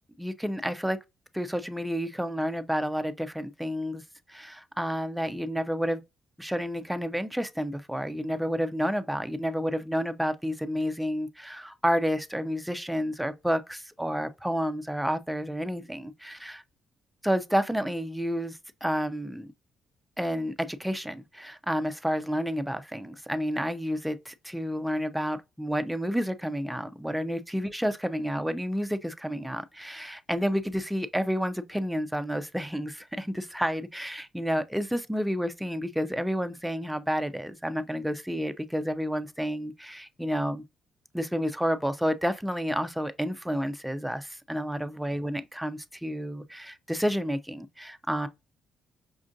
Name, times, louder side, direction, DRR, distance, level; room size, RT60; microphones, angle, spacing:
voice 1, 0.2-1.0 1.3-4.0 4.3-6.0 6.4-16.6 17.2-19.5 20.2-40.6 41.1-48.3, equal, 5° right, 0.4 m, -30 dB
5.2 x 2.4 x 2.5 m
cardioid pair, 90°, 0 cm